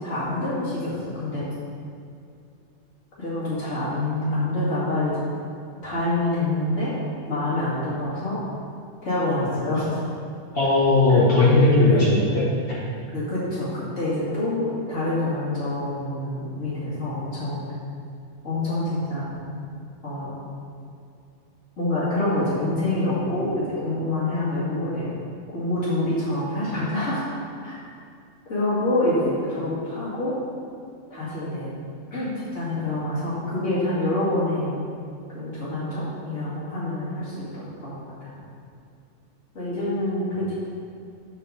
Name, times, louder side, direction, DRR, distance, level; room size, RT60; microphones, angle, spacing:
voice 1, 0.0-1.5 3.2-5.2 5.8-6.9 7.3-8.4 9.0-10.0 11.1-12.2 13.1-17.6 18.4-19.3 20.0-20.3 21.8-25.1 25.5-27.2 27.6-27.8 28.5-30.4 31.1-31.7 32.1-34.8 35.3-38.4 39.5-40.7, left 1 dB, 85° left, -10 dB, 2.8 m, -26 dB
voice 2, 10.5-12.8, left 2 dB, 50° left, -7 dB, 1.7 m, -18 dB
8.5 x 4.0 x 6.6 m, 2.5 s
omnidirectional pair, 1.2 m